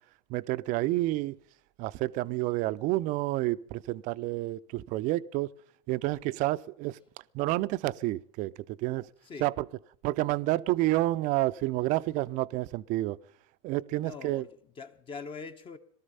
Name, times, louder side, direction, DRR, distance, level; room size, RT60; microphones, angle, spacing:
voice 1, 0.3-1.4 1.8-5.5 5.9-7.0 7.3-8.5 8.8-9.1 9.4-9.5 10.0-13.2 13.6-14.4, right 18 dB, 50° right, 0.5 m, -29 dB
voice 2, 9.2-9.5 13.9-15.8, left 5 dB, 30° left, 1.0 m, -43 dB
18.5 x 13.0 x 5.5 m
hypercardioid pair, 105°, 17 cm